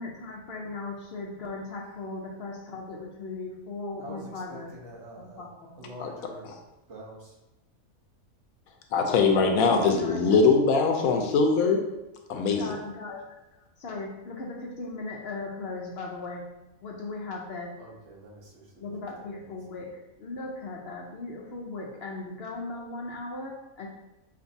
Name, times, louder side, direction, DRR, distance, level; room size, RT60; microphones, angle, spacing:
voice 1, 0.0-4.7 5.2-5.8 9.7-10.4 12.6-13.2 13.8-16.4 16.8-17.7 18.8-19.9 20.2-23.9, left 3 dB, 60° left, -1 dB, 0.7 m, -37 dB
voice 2, 4.0-5.5 5.7-6.5 6.9-7.3 17.8-18.9, right 1 dB, 55° right, -3 dB, 1.2 m, -45 dB
voice 3, 8.9-11.8 12.3-12.6, left 4 dB, 80° left, 3 dB, 1.0 m, -22 dB
6.4 x 2.5 x 2.6 m, 0.96 s
omnidirectional pair, 1.5 m